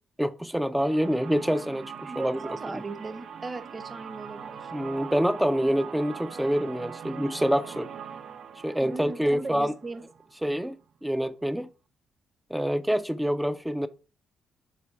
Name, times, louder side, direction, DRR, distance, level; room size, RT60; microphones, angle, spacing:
voice 1, 0.2-2.4 2.7-2.8 4.7-7.9 8.6-9.7 10.4-10.8 11.0-11.7 12.5-13.9, equal, 5° right, 0.4 m, -26 dB
sound 1, 0.8-10.5, right 7 dB, 65° right, 0.6 m, -42 dB
voice 2, 2.1-4.7 8.8-10.3, right 3 dB, 30° right, 0.9 m, -38 dB
7.7 x 3.3 x 4.5 m
cardioid pair, 95°, 0 cm